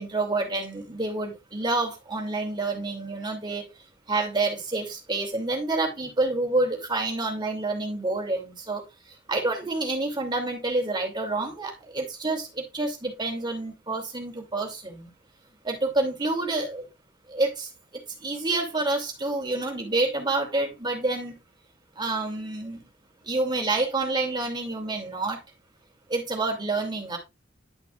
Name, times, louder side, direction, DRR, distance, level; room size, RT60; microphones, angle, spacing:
voice 1, 0.0-3.6 4.1-8.8 9.3-15.1 15.6-16.8 17.3-17.7 18.2-21.3 22.0-22.8 23.3-25.4 26.1-27.2, right 2 dB, 25° right, 2.8 m, -28 dB
11.0 x 5.9 x 2.5 m
head